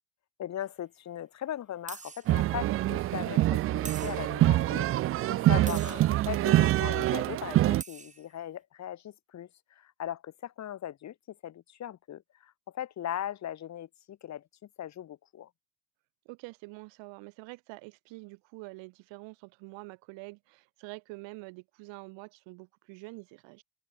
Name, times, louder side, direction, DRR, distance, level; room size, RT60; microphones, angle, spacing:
voice 1, 0.4-14.4 14.8-15.5, left 11 dB, 35° left, 5.8 m, -39 dB
sound 1, 0.6-0.7 1.9-2.3 3.8-4.4 5.7-6.1 7.5-7.6 7.8-8.3, right 5 dB, 15° right, 5.4 m, -44 dB
sound 2, 2.3-7.8, right 15 dB, 30° right, 0.4 m, -25 dB
voice 2, 16.3-23.6, right 26 dB, 75° right, 7.2 m, -46 dB
cardioid pair, 170°, 45 cm